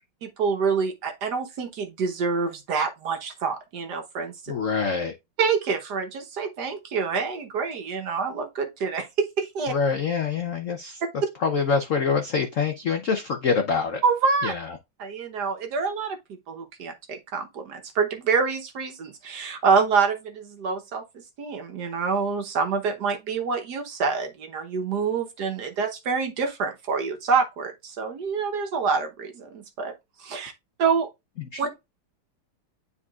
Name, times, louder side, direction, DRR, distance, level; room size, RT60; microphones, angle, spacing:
voice 1, 0.2-4.3 5.4-9.7 14.0-14.5 15.0-16.2 16.5-29.9 30.2-30.5 30.8-31.1 31.6-31.8, right 5 dB, 60° right, 1.4 m, -26 dB
voice 2, 4.5-5.1 9.7-11.0 11.4-14.0 14.4-14.7 31.5-31.6, left 5 dB, 65° left, 0.7 m, -25 dB
9.8 x 4.1 x 2.4 m
omnidirectional pair, 2.3 m